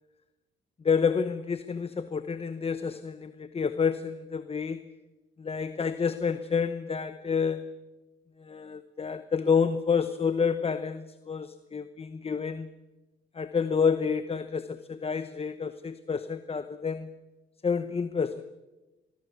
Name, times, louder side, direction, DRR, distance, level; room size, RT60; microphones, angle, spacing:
voice 1, 0.8-4.9 5.4-7.7 8.4-12.7 13.3-17.1 17.6-18.4, left 6 dB, 30° left, 12 dB, 1.0 m, -29 dB
24.5 x 23.0 x 7.0 m, 1.1 s
cardioid pair, 90°, 20 cm